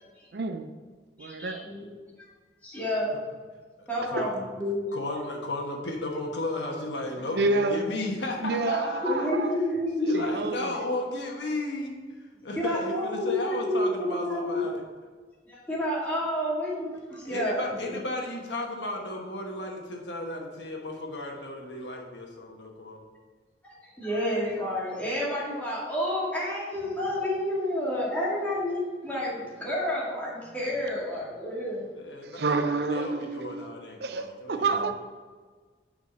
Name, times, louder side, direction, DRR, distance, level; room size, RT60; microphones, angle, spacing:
voice 1, 0.3-0.7 1.2-1.7 7.3-7.9 8.4-9.5 10.1-10.8 32.2-33.7 34.0-34.9, right 3 dB, 65° right, 8 dB, 0.5 m, -28 dB
voice 2, 1.2-1.9 2.6-3.1 3.9-4.9 9.0-10.2 12.6-14.6 15.5-17.6 23.6-31.9 34.7-34.9, left 1 dB, 10° left, -7 dB, 2.1 m, -30 dB
voice 3, 4.9-9.3 10.0-12.0 12.4-14.8 17.2-23.1 31.9-32.6 32.9-34.7, left 1 dB, 80° left, 1 dB, 1.3 m, -34 dB
6.3 x 4.8 x 5.6 m, 1.5 s
head